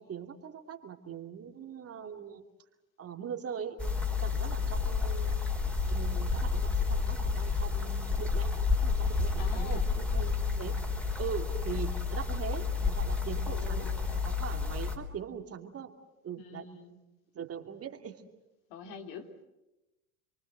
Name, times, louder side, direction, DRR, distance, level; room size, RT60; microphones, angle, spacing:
voice 1, 0.0-2.4 3.0-3.8 4.2-5.3 5.9-8.5 8.8-10.8 11.2-15.9 16.2-16.7 17.3-18.2, right 7 dB, 35° right, 4 dB, 2.6 m, -41 dB
sound 1, 3.8-15.0, left 4 dB, 5° left, 4.1 m, -30 dB
voice 2, 9.4-9.9 13.4-14.1 16.4-17.0 18.7-19.3, left 5 dB, 55° left, 4 dB, 3.4 m, -45 dB
28.0 x 24.0 x 7.9 m, 0.97 s
figure-of-eight pair, 75°, 43 cm